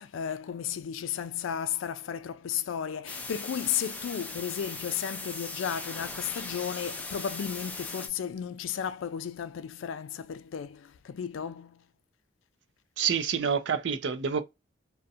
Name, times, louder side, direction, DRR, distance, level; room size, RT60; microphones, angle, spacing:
voice 1, 0.0-11.8, left 8 dB, 85° left, 0.4 m, -34 dB
sound 1, 3.1-8.1, left 3 dB, 10° left, 0.3 m, -39 dB
voice 2, 13.0-14.4, right 7 dB, 65° right, 0.4 m, -27 dB
2.7 x 2.1 x 2.4 m
head